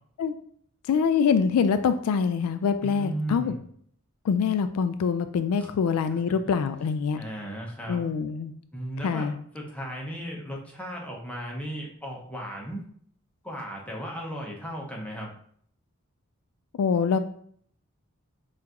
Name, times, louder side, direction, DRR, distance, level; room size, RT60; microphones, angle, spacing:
voice 1, 0.9-3.5 4.2-7.2 7.9-8.5 9.0-9.4 16.8-17.2, left 6 dB, 80° left, 12 dB, 0.3 m, -24 dB
voice 2, 2.8-3.6 5.6-5.7 7.2-8.1 8.7-12.8 13.4-15.3, right 1 dB, 5° left, -1 dB, 0.7 m, -36 dB
5.6 x 2.5 x 2.9 m, 0.62 s
head